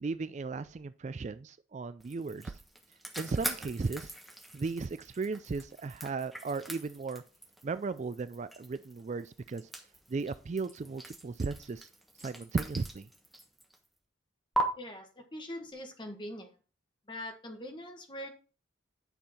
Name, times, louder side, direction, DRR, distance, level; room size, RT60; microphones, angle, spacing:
voice 1, 0.0-2.5 3.2-4.1 4.5-7.2 7.6-9.6 10.1-11.9 12.2-13.1, right 4 dB, 35° right, 13 dB, 0.3 m, -36 dB
sound 1, 2.0-13.9 14.5-14.6, right 1 dB, ahead, 1.1 m, -42 dB
voice 2, 14.7-16.6 17.1-18.3, left 1 dB, 25° left, 4 dB, 1.5 m, -42 dB
9.3 x 5.6 x 4.3 m, 0.36 s
head